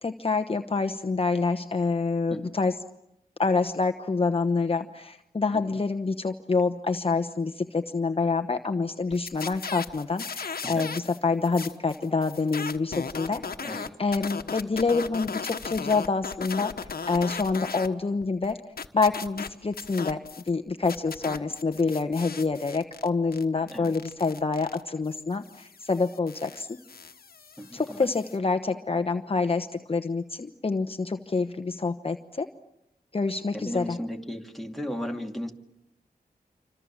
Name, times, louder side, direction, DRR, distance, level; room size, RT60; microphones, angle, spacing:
voice 1, 0.0-2.8 3.4-13.4 13.7-16.7 17.1-18.6 18.9-20.2 20.5-26.8 27.7-32.5 33.1-34.0, left 4 dB, 35° left, 6 dB, 1.1 m, -27 dB
sound 1, 9.1-11.2 11.4-17.9 18.2-20.5 20.8-28.4, left 5 dB, 75° left, 1.4 m, -37 dB
voice 2, 27.6-28.1 33.5-35.5, equal, ahead, 2 dB, 2.5 m, -35 dB
27.0 x 25.5 x 7.3 m, 0.83 s
wide cardioid pair, 95°, 16 cm